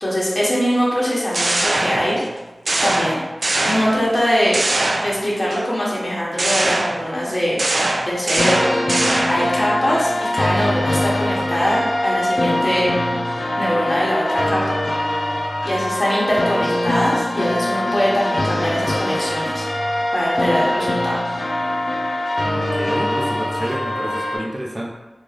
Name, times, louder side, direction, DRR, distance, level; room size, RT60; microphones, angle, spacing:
voice 1, 0.0-2.2 2.8-3.2 3.6-4.6 5.0-7.6 8.0-8.7 9.3-12.9 13.6-14.8 15.6-19.7 20.1-21.2, equal, 35° left, -6 dB, 1.1 m, -22 dB
sound 1, 1.0-2.3 2.7-4.2 4.5-5.6 6.4-9.6, right 2 dB, 70° right, 0.3 m, -22 dB
sound 2, 8.4-24.4, left 1 dB, 85° left, 0.6 m, -23 dB
voice 2, 22.5-24.9, equal, 30° right, -3 dB, 0.7 m, -29 dB
3.8 x 2.4 x 3.3 m, 1.2 s
wide cardioid pair, 55°, 0 cm